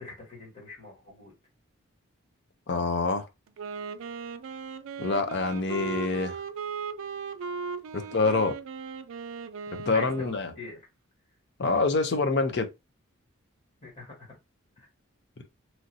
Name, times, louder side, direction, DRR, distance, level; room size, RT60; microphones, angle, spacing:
voice 1, 0.0-1.3 7.9-8.1 9.9-10.8 13.8-14.4 14.8-14.9, left 3 dB, 30° left, 1.3 m, -43 dB
voice 2, 2.7-3.3 5.0-6.4 7.9-8.5 9.9-10.5 11.6-12.7, left 3 dB, 50° left, 0.5 m, -26 dB
Wind instrument woodwind instrument, 3.5-10.6, right 5 dB, 70° right, 0.4 m, -37 dB
3.1 x 2.6 x 2.6 m
head